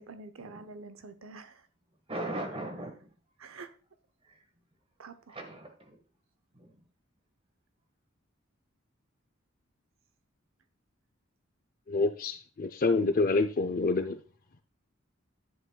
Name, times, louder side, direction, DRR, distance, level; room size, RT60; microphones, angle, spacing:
voice 1, 0.0-1.7 3.4-3.7 5.0-5.4, right 3 dB, 90° right, 0.8 m, -47 dB
voice 2, 2.1-3.1 4.2-4.4 5.3-6.0 6.5-6.7, right 1 dB, 30° right, 1.4 m, -39 dB
voice 3, 11.9-14.2, left 3 dB, 45° left, 0.5 m, -27 dB
10.5 x 7.7 x 2.3 m
head